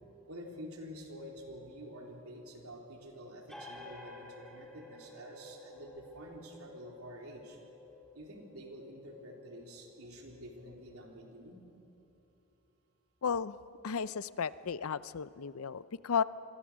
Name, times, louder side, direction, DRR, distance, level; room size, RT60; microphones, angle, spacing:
voice 1, 0.3-7.6 8.1-11.6, equal, 80° right, 0 dB, 3.7 m, -48 dB
sound 1, 3.5-10.7, left 1 dB, ahead, 3.7 m, -53 dB
voice 2, 13.2-13.6 13.8-16.2, left 6 dB, 75° left, 16 dB, 0.6 m, -34 dB
28.0 x 22.5 x 6.3 m, 2.9 s
head